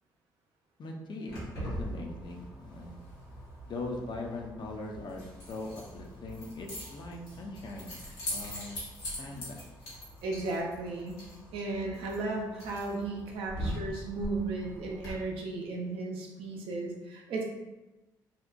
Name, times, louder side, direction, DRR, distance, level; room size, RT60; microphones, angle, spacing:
voice 1, 0.8-3.0 3.7-8.0 8.3-8.8 9.2-9.6, left 2 dB, 45° left, 1 dB, 0.5 m, -40 dB
Keys jangling, 1.3-15.1, equal, 85° left, 0.9 m, -42 dB
voice 2, 10.2-11.2 11.5-17.4, right 3 dB, 65° right, 0 dB, 0.5 m, -35 dB
2.7 x 2.1 x 2.4 m, 1.1 s
hypercardioid pair, 50°, 10 cm